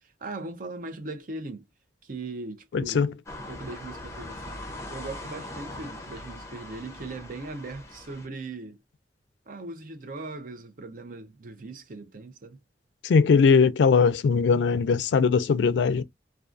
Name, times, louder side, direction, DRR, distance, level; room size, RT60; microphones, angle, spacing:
voice 1, 0.0-1.6 2.0-3.1 3.5-4.6 4.9-8.8 9.5-12.6, right 2 dB, 50° right, 0.6 m, -39 dB
voice 2, 2.7-3.1 13.0-16.0, left 5 dB, 85° left, 0.3 m, -20 dB
sound 1, 3.3-8.3, left 1 dB, 15° left, 0.6 m, -41 dB
2.4 x 2.3 x 2.4 m
head